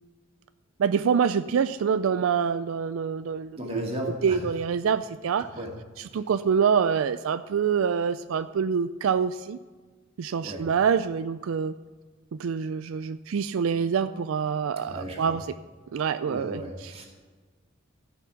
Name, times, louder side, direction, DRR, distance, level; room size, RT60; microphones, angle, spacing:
voice 1, 0.8-3.8 4.2-5.5 6.1-9.6 10.2-11.8 12.3-15.4 15.9-16.9, right 6 dB, 85° right, 13 dB, 0.4 m, -26 dB
voice 2, 3.6-4.4 5.5-5.7 6.1-6.2 10.4-10.6 14.8-15.4 16.2-17.1, equal, 30° right, 0 dB, 2.3 m, -35 dB
14.0 x 5.9 x 6.9 m, 1.4 s
head